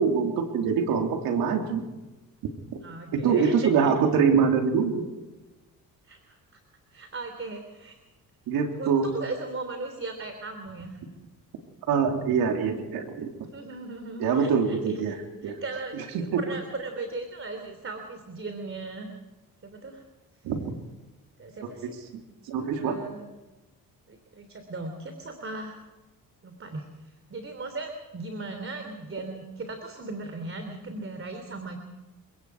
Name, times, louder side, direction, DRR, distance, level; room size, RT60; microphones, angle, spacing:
voice 1, 0.0-1.9 3.1-5.0 8.5-9.0 11.9-13.3 14.2-15.1 15.4-15.6 16.1-16.4 20.4-20.6 22.5-23.0, right 6 dB, 85° right, 3 dB, 3.3 m, -24 dB
voice 2, 2.8-4.0 6.0-6.4 6.9-7.9 8.7-11.0 13.5-15.1 15.4-16.0 16.3-19.1 19.6-20.0 21.4-21.9 22.6-23.3 24.1-25.8 26.4-31.8, right 3 dB, 35° right, 6 dB, 3.4 m, -37 dB
30.0 x 18.0 x 4.9 m, 1.1 s
cardioid pair, 80°, 35 cm